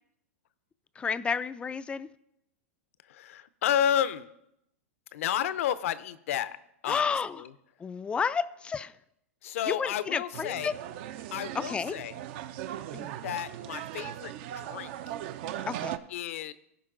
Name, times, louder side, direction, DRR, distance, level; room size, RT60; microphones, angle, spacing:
voice 1, 1.0-2.1 6.9-7.4 7.8-8.9 9.7-10.7 11.5-11.9 12.9-13.1 15.7-16.0, left 6 dB, 15° left, 15 dB, 0.3 m, -31 dB
voice 2, 3.1-4.3 5.1-6.6 6.8-7.5 9.4-10.7 11.3-12.1 13.2-14.9 16.1-16.5, left 10 dB, 65° left, 16 dB, 0.6 m, -31 dB
sound 1, 10.3-16.0, right 12 dB, 50° right, 0.5 m, -38 dB
15.5 x 5.2 x 3.8 m, 0.79 s
hypercardioid pair, 125°, 8 cm